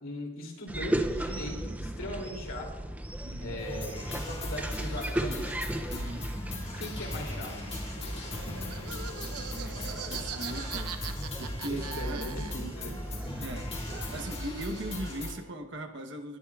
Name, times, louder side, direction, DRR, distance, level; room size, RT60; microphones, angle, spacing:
voice 1, 0.0-2.7 3.4-5.5 6.8-7.5 8.0-8.2 8.5-8.6 11.7-13.0, left 1 dB, 60° left, 0 dB, 2.9 m, -39 dB
sound 1, 0.7-14.4, right 1 dB, 5° right, 0.4 m, -37 dB
voice 2, 3.2-3.6 5.9-6.3 9.5-12.2 13.4-16.4, right 1 dB, 50° right, 5 dB, 1.0 m, -40 dB
sound 2, 3.6-15.3, left 1 dB, 25° left, 2.0 m, -38 dB
Laughter, 7.7-12.8 13.1-15.1, right 7 dB, 85° right, 0.7 m, -42 dB
19.5 x 11.5 x 2.4 m, 1.1 s
head